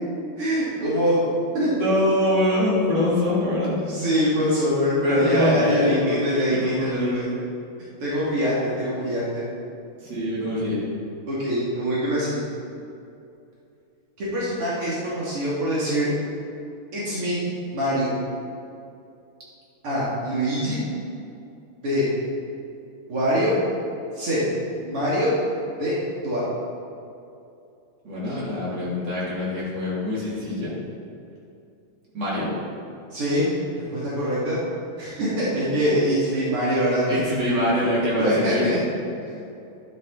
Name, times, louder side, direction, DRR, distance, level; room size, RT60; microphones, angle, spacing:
voice 1, 0.4-1.2 1.5-1.7 3.8-7.3 8.0-9.4 11.3-12.4 14.2-16.1 16.9-17.4 17.7-18.1 19.8-20.8 21.8-22.1 23.1-23.5 24.1-24.4 24.8-25.3 25.8-25.9 26.2-26.4 28.3-28.4 33.1-33.5 33.8-34.6 35.0-37.2 38.2-38.8 39.2-39.4, equal, 80° right, -9 dB, 3.5 m, -24 dB
voice 2, 1.8-3.8 5.0-7.3 10.0-10.9 28.0-30.7 32.1-32.5 37.1-38.7, left 1 dB, 50° right, -8 dB, 4.0 m, -24 dB
12.5 x 10.0 x 4.1 m, 2.6 s
omnidirectional pair, 2.4 m